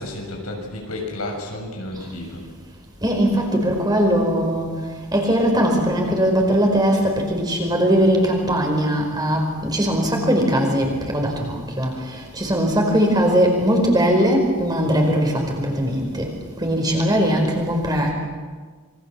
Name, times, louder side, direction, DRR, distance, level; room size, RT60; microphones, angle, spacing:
voice 1, 0.0-2.4, left 1 dB, 80° left, 1 dB, 6.8 m, -31 dB
voice 2, 3.0-4.7 5.1-11.9 12.4-16.3 16.6-18.1, equal, 20° right, 2 dB, 5.0 m, -20 dB
27.0 x 23.5 x 7.6 m, 1.5 s
head